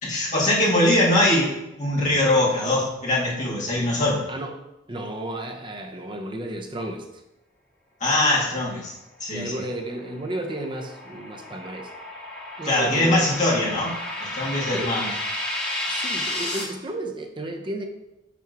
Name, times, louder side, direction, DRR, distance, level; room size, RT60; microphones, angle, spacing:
voice 1, 0.0-4.3 8.0-8.9 9.2-9.5 12.6-15.1, left 1 dB, 40° left, -6 dB, 2.1 m, -22 dB
voice 2, 4.9-7.2 9.3-11.9 12.6-13.5 14.7-15.0 15.9-17.8, right 1 dB, 25° right, 4 dB, 0.7 m, -33 dB
sound 1, 9.8-16.6, left 1 dB, 5° left, 2.0 m, -32 dB
5.9 x 3.5 x 6.0 m, 0.94 s
head